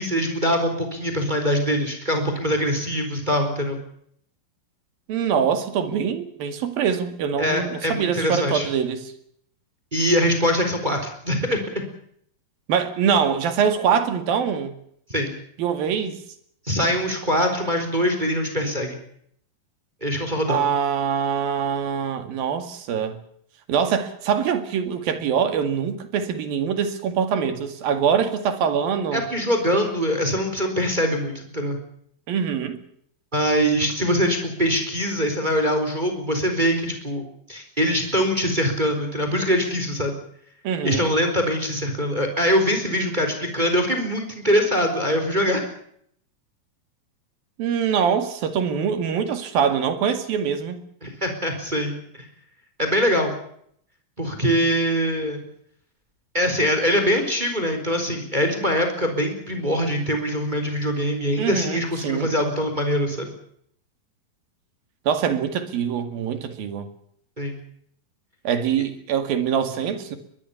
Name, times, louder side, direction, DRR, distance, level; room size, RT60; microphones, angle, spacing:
voice 1, 0.0-3.8 7.4-8.7 9.9-11.0 11.2-11.6 15.1-15.3 16.6-19.0 20.0-20.6 29.1-31.8 33.3-40.1 40.8-45.6 51.0-52.2 52.8-53.3 54.2-55.4 56.3-63.3 67.4-67.6, equal, 10° right, 4.0 m, -23 dB
voice 2, 5.1-9.1 12.7-14.7 15.6-16.2 20.5-23.2 23.7-29.2 32.3-32.8 40.6-41.0 47.6-50.8 61.4-62.3 65.1-66.9 68.5-70.2, right 7 dB, 85° right, 4.0 m, -24 dB
22.5 x 21.0 x 7.1 m
omnidirectional pair, 4.0 m